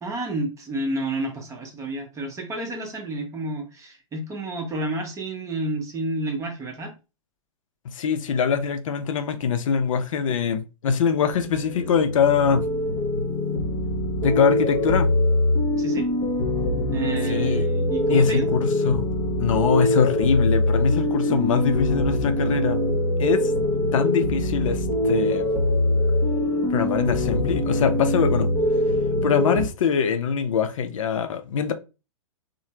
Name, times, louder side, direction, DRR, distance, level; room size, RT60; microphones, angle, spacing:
voice 1, 0.0-6.9 15.8-16.1 16.9-18.5, right 2 dB, 20° right, 0.8 m, -30 dB
voice 2, 7.8-12.7 14.2-15.1 17.3-17.7 18.1-19.1 19.4-22.8 23.2-23.5 23.9-25.5 26.7-28.5 29.2-31.7, left 6 dB, 70° left, 0.4 m, -23 dB
sound 1, 11.3-29.7, left 1 dB, 25° left, 1.0 m, -23 dB
3.2 x 2.0 x 2.8 m
hypercardioid pair, 115°, 17 cm